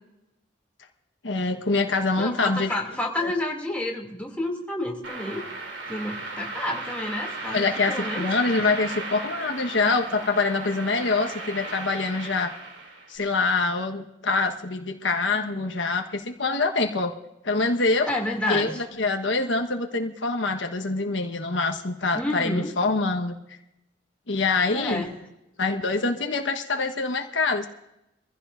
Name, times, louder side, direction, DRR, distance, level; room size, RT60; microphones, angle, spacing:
voice 1, 1.2-2.7 7.5-12.5 13.1-17.1 17.4-18.1 18.5-23.4 24.3-25.0 25.6-27.7, left 3 dB, 80° left, 3 dB, 1.3 m, -25 dB
voice 2, 2.2-5.4 5.9-8.3 18.1-18.8 22.1-22.7 24.7-25.1, left 1 dB, 5° left, -1 dB, 2.7 m, -29 dB
sound 1, 5.0-13.1, right 3 dB, 75° right, 2.9 m, -36 dB
25.0 x 15.5 x 2.6 m, 0.89 s
head